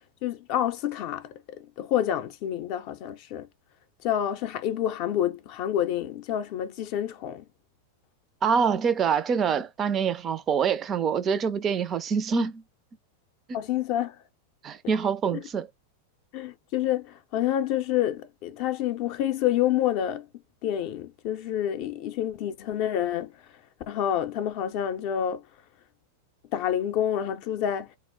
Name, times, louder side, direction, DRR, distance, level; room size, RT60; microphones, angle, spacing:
voice 1, 0.2-3.5 4.0-7.4 13.5-14.2 15.3-15.4 16.3-20.3 20.6-23.3 23.9-25.4 26.5-27.9, left 11 dB, 50° left, 0.5 m, -28 dB
voice 2, 8.4-12.6 14.6-15.7, right 6 dB, 30° right, 0.3 m, -25 dB
2.1 x 2.0 x 3.6 m
hypercardioid pair, 95°, 0 cm